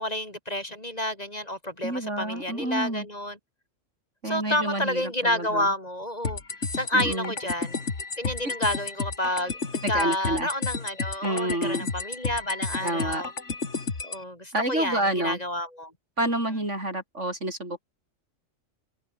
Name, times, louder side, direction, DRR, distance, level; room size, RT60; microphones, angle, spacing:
voice 1, 0.0-3.4 4.2-6.4 6.7-7.8 8.2-13.3 14.0-15.9, left 1 dB, 30° left, 5.6 m, -29 dB
voice 2, 1.8-3.1 4.2-5.7 6.9-7.3 9.8-10.5 11.2-11.9 12.8-13.2 14.5-15.4 16.2-17.8, right 1 dB, 70° right, 8.5 m, -29 dB
sound 1, 6.2-14.2, left 4 dB, 65° left, 2.7 m, -32 dB
omnidirectional pair, 1.3 m